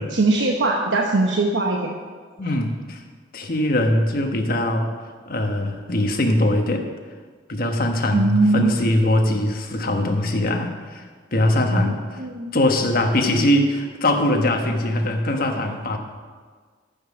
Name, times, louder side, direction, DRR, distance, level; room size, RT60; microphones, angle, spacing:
voice 1, 0.1-1.9 8.1-8.8 11.7-12.6, right 2 dB, 90° right, 0 dB, 1.0 m, -21 dB
voice 2, 2.4-3.0 3.3-4.9 5.3-6.8 7.5-11.0 11.3-12.2 12.5-16.0, left 1 dB, 55° left, 4 dB, 1.2 m, -21 dB
14.0 x 5.5 x 6.2 m, 1.5 s
head